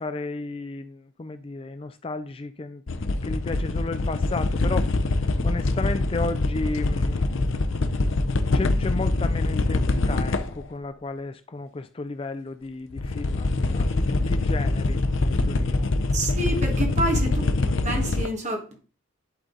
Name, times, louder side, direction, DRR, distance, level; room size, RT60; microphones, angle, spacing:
voice 1, 0.0-2.8 3.2-7.4 7.7-7.8 8.5-15.9, left 3 dB, 25° left, 0.4 m, -33 dB
sound 1, 2.9-10.6 12.9-18.3, left 2 dB, 70° left, 0.7 m, -24 dB
voice 2, 16.1-18.8, right 1 dB, 35° right, 1.7 m, -28 dB
11.0 x 3.9 x 3.9 m
head